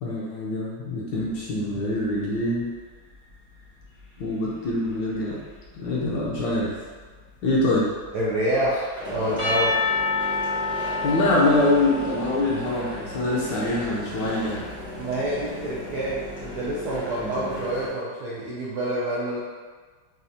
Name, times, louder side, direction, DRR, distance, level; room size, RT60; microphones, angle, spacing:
voice 1, 0.0-2.7 4.2-5.4 5.7-6.8 7.4-7.9 11.0-14.6 17.2-17.4, left 2 dB, 70° left, -5 dB, 1.2 m, -24 dB
sound 1, 1.2-17.9, left 1 dB, 5° right, 0.4 m, -39 dB
voice 2, 8.1-9.8 15.0-19.4, right 1 dB, 75° right, -7 dB, 0.9 m, -27 dB
Percussion / Church bell, 9.4-13.6, left 3 dB, 45° left, 0.9 m, -28 dB
4.2 x 2.3 x 2.7 m, 1.4 s
omnidirectional pair, 2.2 m